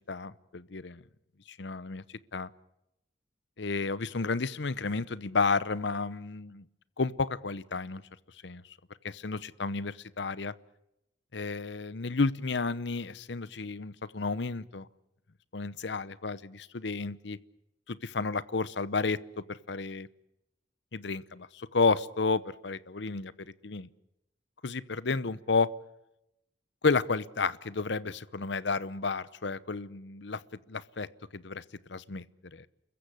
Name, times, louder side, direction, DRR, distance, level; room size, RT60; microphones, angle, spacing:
voice 1, 0.1-1.0 1.5-2.0 2.3-2.5 3.6-6.6 7.0-8.0 8.4-8.6 9.0-10.5 11.3-14.9 15.5-17.4 17.9-19.2 19.5-20.1 20.9-23.3 23.6-23.9 24.6-25.7 26.8-30.4 30.7-31.1 31.3-31.6 31.9-32.2 32.5-32.7, left 4 dB, 70° left, 18 dB, 0.8 m, -31 dB
29.0 x 15.0 x 10.0 m, 0.84 s
head